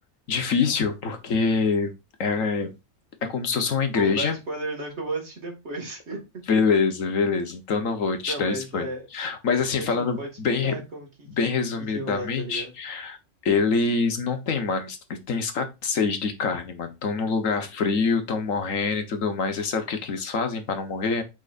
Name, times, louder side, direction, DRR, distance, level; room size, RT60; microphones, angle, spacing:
voice 1, 0.3-1.9 2.2-2.7 3.2-4.3 6.5-10.8 11.3-13.2 13.4-21.2, left 5 dB, 85° left, 7 dB, 1.6 m, -25 dB
voice 2, 3.9-6.2 6.5-6.6 8.2-9.1 9.8-11.6 11.9-12.7, right 2 dB, 60° right, 1 dB, 2.4 m, -34 dB
7.6 x 5.5 x 2.6 m, 0.24 s
omnidirectional pair, 1.3 m